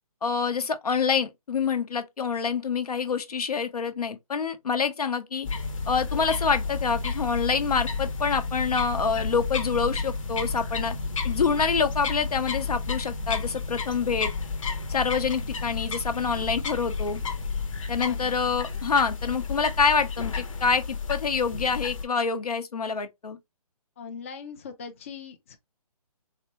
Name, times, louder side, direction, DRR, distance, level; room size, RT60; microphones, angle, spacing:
voice 1, 0.2-5.5 5.9-10.9 11.2-14.3 14.9-17.2 17.9-23.4, left 5 dB, 85° left, 0.9 m, -26 dB
sound 1, 5.4-22.0, left 4 dB, 60° left, 0.9 m, -31 dB
voice 2, 24.0-25.6, left 6 dB, 20° left, 0.4 m, -40 dB
4.1 x 2.2 x 2.9 m
hypercardioid pair, 160°, 19 cm